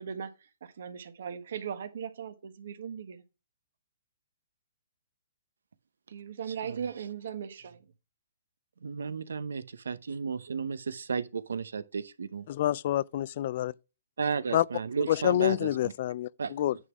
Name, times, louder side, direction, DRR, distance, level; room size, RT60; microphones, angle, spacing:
voice 1, 0.0-3.2 6.1-7.9, right 7 dB, 65° right, 1.5 m, -38 dB
voice 2, 8.8-12.5 14.2-15.9 16.4-16.7, right 5 dB, 90° right, 0.8 m, -33 dB
voice 3, 12.5-13.7 14.5-14.6 15.1-16.8, left 12 dB, 50° left, 0.3 m, -27 dB
9.8 x 3.8 x 6.1 m
hypercardioid pair, 150°, 0 cm